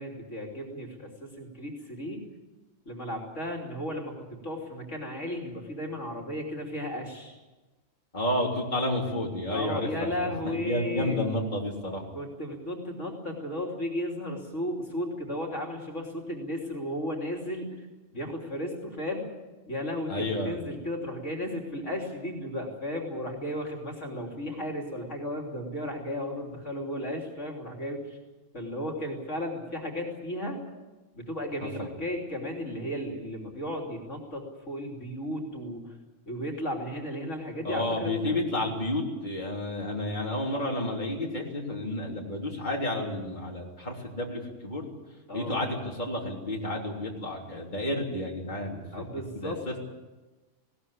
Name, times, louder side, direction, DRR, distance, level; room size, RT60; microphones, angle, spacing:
voice 1, 0.0-2.2 2.9-7.4 9.5-11.2 12.1-17.9 18.1-19.3 19.7-28.2 28.5-30.6 31.1-36.0 36.3-38.1 45.3-45.6 48.9-49.6, left 1 dB, 70° left, 1 dB, 3.4 m, -34 dB
voice 2, 8.1-12.0 20.1-20.6 31.6-31.9 37.6-45.0 45.3-49.0 49.3-49.8, left 1 dB, 35° left, -2 dB, 3.6 m, -31 dB
20.0 x 18.0 x 8.7 m, 1.2 s
omnidirectional pair, 1.3 m